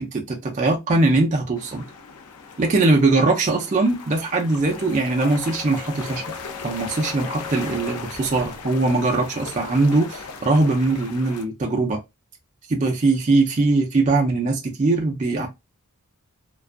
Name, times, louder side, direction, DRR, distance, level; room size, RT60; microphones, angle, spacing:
voice 1, 0.0-1.8 2.6-6.2 6.6-12.0 12.7-15.5, right 3 dB, 35° right, 0.4 m, -21 dB
sound 1, 1.6-11.4, left 5 dB, 85° left, 0.5 m, -38 dB
sound 2, 4.5-11.0, left 4 dB, 10° left, 0.9 m, -42 dB
2.3 x 2.2 x 2.5 m
head